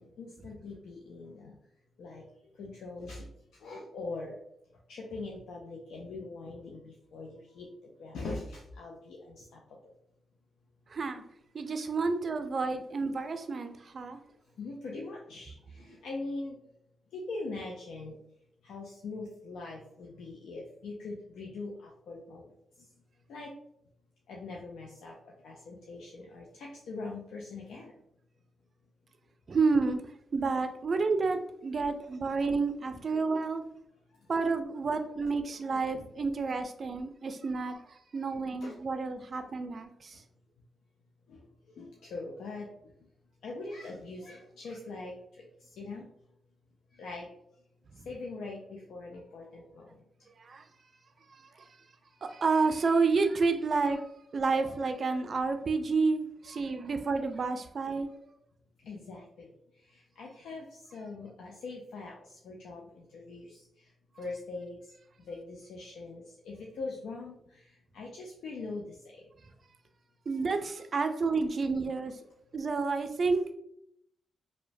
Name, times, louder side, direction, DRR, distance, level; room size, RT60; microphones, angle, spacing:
voice 1, 0.0-1.6 2.0-4.4 4.9-9.9 14.5-16.6 17.1-18.2 18.6-22.9 23.3-23.5 24.3-27.9 34.1-34.3 38.6-38.8 40.1-40.2 41.3-43.1 43.4-46.1 46.9-47.4 47.9-50.0 52.1-52.2 58.8-63.9 64.2-64.9 65.2-69.3, left 3 dB, 85° left, -2 dB, 0.3 m, -42 dB
voice 2, 10.9-11.2 11.5-14.2 29.5-30.0 30.3-33.6 34.3-40.2 50.4-50.6 51.3-51.7 52.2-54.0 54.3-58.3 70.3-72.1 72.5-73.5, right 4 dB, 55° right, 8 dB, 0.3 m, -30 dB
2.9 x 2.1 x 2.6 m, 0.76 s
supercardioid pair, 55°, 0 cm